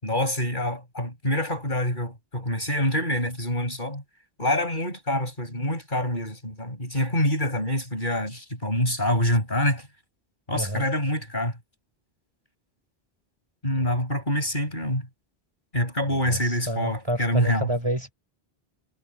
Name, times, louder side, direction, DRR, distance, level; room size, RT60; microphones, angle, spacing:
voice 1, 0.0-4.0 4.4-9.9 10.5-11.6 13.6-15.1 15.7-17.7, left 1 dB, 50° left, 8.3 m, -26 dB
voice 2, 10.5-10.9 13.8-14.0 16.1-18.1, right 1 dB, 25° right, 4.7 m, -30 dB
omnidirectional pair, 1.1 m